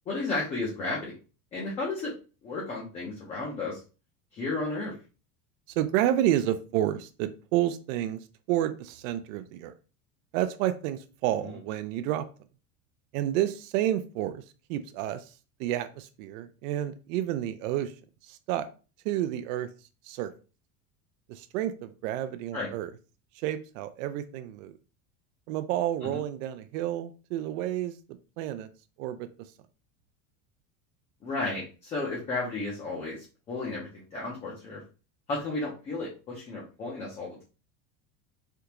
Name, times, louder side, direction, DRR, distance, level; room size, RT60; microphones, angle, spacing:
voice 1, 0.1-1.1 1.5-2.1 2.4-3.8 4.3-4.9 11.4-11.5 22.5-22.7 26.1-26.2 31.2-34.8 35.3-37.4, left 3 dB, 15° left, -4 dB, 0.4 m, -33 dB
voice 2, 5.8-8.2 8.5-9.7 10.3-12.3 13.1-14.4 14.7-15.3 15.6-18.0 18.2-18.7 19.0-19.7 20.0-20.3 21.3-22.9 23.3-24.7 25.5-28.7 29.0-29.3, right 12 dB, 75° right, 11 dB, 0.5 m, -30 dB
3.4 x 2.4 x 2.8 m, 0.34 s
cardioid pair, 175°, 39 cm